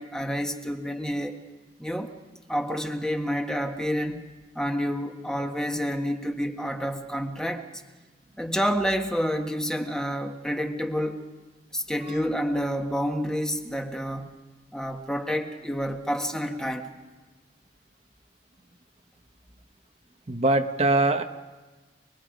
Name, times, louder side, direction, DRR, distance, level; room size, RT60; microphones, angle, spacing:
voice 1, 0.0-1.4 1.8-2.1 2.5-4.2 4.5-7.6 8.4-11.2 11.7-14.4 14.7-16.9, equal, 5° left, 4 dB, 1.4 m, -29 dB
voice 2, 20.3-21.2, right 2 dB, 35° right, 5 dB, 1.0 m, -23 dB
29.0 x 21.5 x 5.2 m, 1.2 s
head